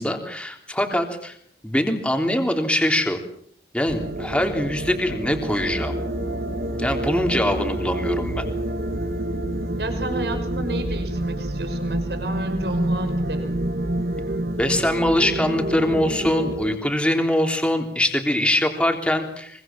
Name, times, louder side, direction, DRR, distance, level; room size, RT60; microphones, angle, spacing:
voice 1, 0.0-1.4 1.6-3.2 3.7-5.9 6.8-8.5 14.6-19.6, left 1 dB, 5° left, 4 dB, 3.5 m, -23 dB
sound 1, 3.9-16.8, right 1 dB, 60° right, 1.3 m, -28 dB
sound 2, 5.7-11.3, left 1 dB, 25° left, 2.8 m, -33 dB
voice 2, 9.8-13.6, right 1 dB, 75° right, 7 dB, 5.6 m, -31 dB
25.0 x 24.0 x 7.6 m, 0.64 s
head